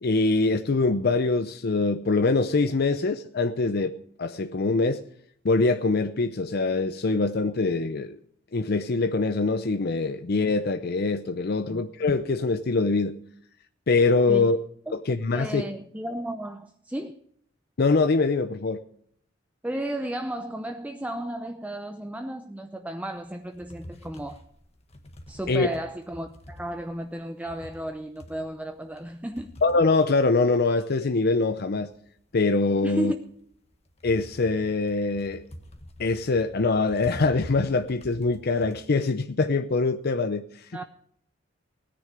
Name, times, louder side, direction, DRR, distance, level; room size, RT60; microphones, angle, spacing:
voice 1, 0.0-3.9 4.2-5.0 5.4-8.2 8.5-13.1 13.9-14.6 14.9-15.6 17.8-18.8 25.5-25.7 29.6-31.9 32.3-33.1 34.0-35.4 36.0-40.8, left 3 dB, 55° left, 0.6 m, -24 dB
voice 2, 15.3-17.2 19.6-24.4 25.3-29.5 32.8-33.2 40.7-40.8, right 1 dB, 10° right, 0.6 m, -33 dB
sound 1, 23.1-31.0 31.4-38.9, equal, 35° left, 1.6 m, -47 dB
17.0 x 10.0 x 5.0 m
head